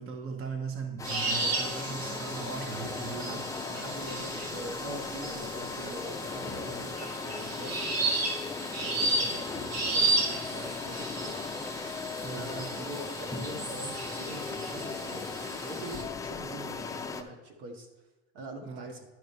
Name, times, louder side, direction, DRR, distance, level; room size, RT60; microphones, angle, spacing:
voice 1, 0.0-3.4 6.7-6.8 12.2-12.9 13.3-13.5 18.6-18.9, right 4 dB, 35° right, 4 dB, 1.0 m, -39 dB
sound 1, 1.0-17.2, left 4 dB, 10° left, 0.4 m, -37 dB
sound 2, 1.0-16.0, right 2 dB, 90° right, 1.7 m, -34 dB
voice 2, 3.1-7.8 8.8-11.4 12.3-17.9 18.3-19.0, right 1 dB, 70° right, 3 dB, 1.6 m, -43 dB
10.5 x 5.3 x 4.3 m, 1.2 s
supercardioid pair, 120°, 37 cm